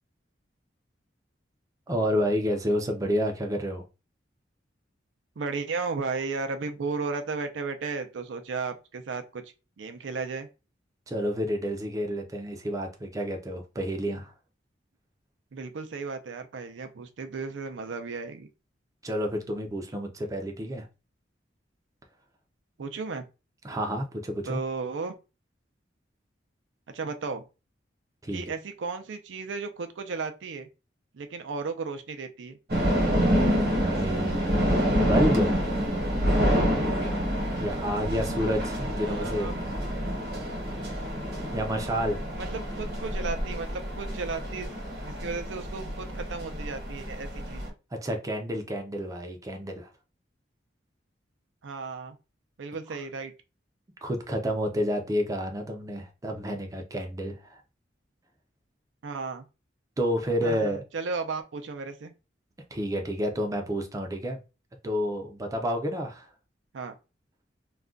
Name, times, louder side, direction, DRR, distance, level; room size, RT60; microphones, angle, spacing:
voice 1, 1.9-3.8 11.1-14.3 19.0-20.9 23.6-24.6 28.2-28.4 33.7-35.6 37.6-39.5 41.5-42.2 47.9-49.9 54.0-57.6 60.0-60.8 62.7-64.4 64.8-66.3, equal, 20° right, 0.4 m, -30 dB
voice 2, 5.4-9.4 9.8-10.5 15.5-18.5 22.8-23.2 24.4-25.2 26.9-27.4 28.3-30.7 31.1-32.6 39.0-39.6 42.3-44.7 45.0-47.7 51.6-52.2 52.6-53.3 59.0-59.4 60.4-62.1 66.7-67.0, right 4 dB, 85° right, 0.5 m, -34 dB
sound 1, 32.7-47.7, equal, 60° right, 1.0 m, -27 dB
2.4 x 2.2 x 3.6 m
head